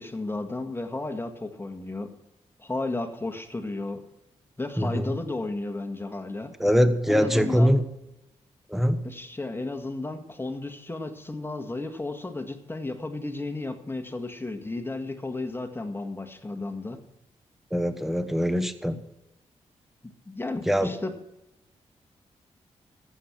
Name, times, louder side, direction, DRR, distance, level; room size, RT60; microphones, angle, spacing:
voice 1, 0.0-2.1 2.6-4.0 4.6-6.5 7.1-7.7 9.0-17.0 20.0-21.1, left 2 dB, 20° left, 5 dB, 1.8 m, -33 dB
voice 2, 4.8-5.1 6.6-7.8 8.7-9.0 17.7-19.0 20.7-21.0, equal, 5° right, 10 dB, 1.2 m, -23 dB
15.0 x 8.2 x 6.1 m, 0.91 s
cardioid pair, 50°, 12 cm